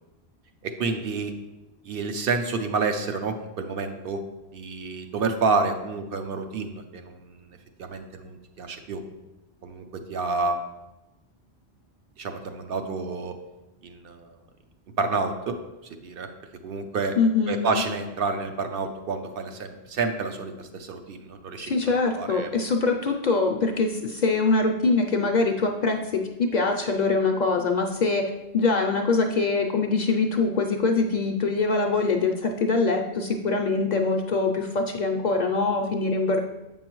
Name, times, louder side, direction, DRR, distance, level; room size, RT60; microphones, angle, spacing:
voice 1, 0.6-1.3 1.8-4.2 4.5-9.0 9.6-10.6 12.2-13.3 13.8-14.4 15.0-15.6 16.0-16.3 16.6-17.2 17.5-21.8 22.2-22.5, right 4 dB, 65° right, 5 dB, 0.8 m, -29 dB
voice 2, 17.2-17.8 21.6-36.4, left 3 dB, 55° left, 3 dB, 0.5 m, -23 dB
7.6 x 5.4 x 3.0 m, 1.0 s
omnidirectional pair, 1.1 m